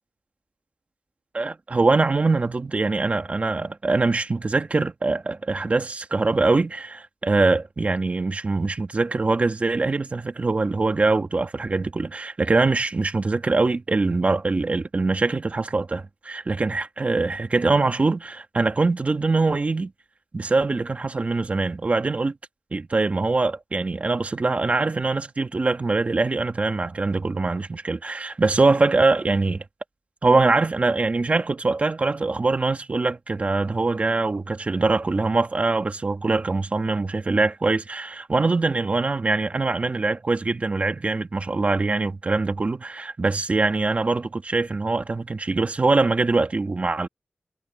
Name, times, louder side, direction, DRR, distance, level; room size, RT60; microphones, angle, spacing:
voice 1, 1.3-19.9 20.3-22.3 22.7-29.6 30.2-47.1, right 3 dB, 45° right, 2.0 m, -23 dB
wide cardioid pair, 75°, 3 cm